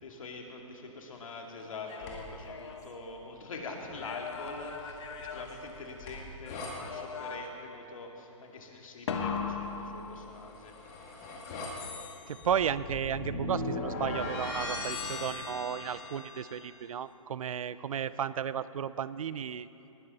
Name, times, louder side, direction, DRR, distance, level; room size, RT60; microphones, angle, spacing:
voice 1, 0.0-11.0, left 3 dB, 75° left, 2 dB, 2.1 m, -44 dB
sound 1, 1.6-3.5 3.9-6.3 6.8-7.7 9.1-10.7 14.0-14.7, left 5 dB, 55° left, 1.3 m, -39 dB
sound 2, 2.0-2.4 4.3-6.7 10.2-16.6, left 2 dB, 30° left, 2.0 m, -39 dB
voice 2, 12.3-19.7, right 8 dB, 80° right, 16 dB, 0.5 m, -33 dB
19.5 x 11.0 x 4.1 m, 2.9 s
hypercardioid pair, 165°, 18 cm